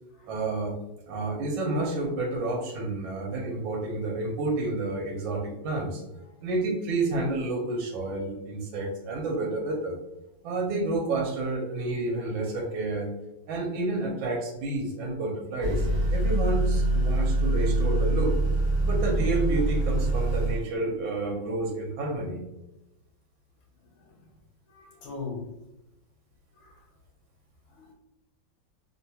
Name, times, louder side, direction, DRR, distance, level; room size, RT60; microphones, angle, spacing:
voice 1, 0.3-0.7 1.1-6.0 6.4-10.0 10.4-13.1 13.5-18.3 18.8-22.4, right 2 dB, 80° right, 1.4 m, -30 dB
Motor vehicle (road) / Accelerating revving vroom, 15.6-20.6, right 2 dB, 45° right, 1.0 m, -24 dB
voice 2, 24.7-25.5 26.6-26.7 27.8-27.9, left 4 dB, 80° left, 1.4 m, -39 dB
3.4 x 2.8 x 2.2 m
omnidirectional pair, 2.2 m